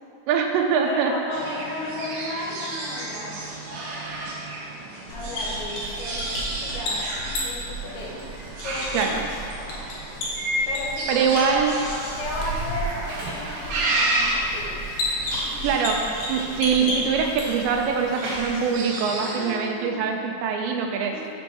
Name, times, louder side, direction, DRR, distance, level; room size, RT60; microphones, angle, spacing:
voice 1, 0.3-1.1 8.9-9.2 11.1-11.8 15.6-21.1, right 6 dB, 90° right, 3 dB, 2.9 m, -23 dB
voice 2, 0.8-3.5 5.1-8.1 8.6-9.2 10.7-14.8 16.8-16.9 19.2-20.1 21.1-21.3, left 2 dB, 80° left, -5 dB, 3.7 m, -34 dB
sound 1, 1.3-19.5, right 2 dB, 65° right, 2.1 m, -32 dB
sound 2, 5.1-17.8, equal, 65° left, 2.6 m, -33 dB
sound 3, 11.9-18.8, right 1 dB, 50° right, 3.0 m, -39 dB
7.2 x 5.2 x 6.1 m, 2.4 s
omnidirectional pair, 5.1 m